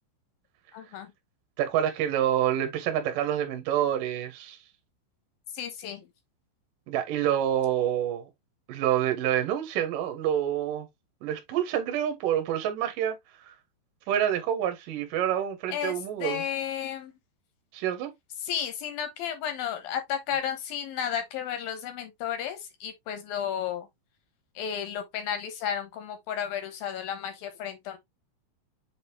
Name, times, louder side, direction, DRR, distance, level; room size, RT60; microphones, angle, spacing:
voice 1, 0.7-1.1 5.5-6.0 15.7-15.9 16.2-17.1 18.4-23.9 24.6-28.0, left 9 dB, 70° left, 2.3 m, -33 dB
voice 2, 1.6-4.6 6.9-8.3 8.7-10.9 11.2-13.2 13.5-13.6 14.1-16.4 17.7-18.1, right 10 dB, 65° right, 2.4 m, -27 dB
7.8 x 4.0 x 3.1 m
omnidirectional pair, 5.6 m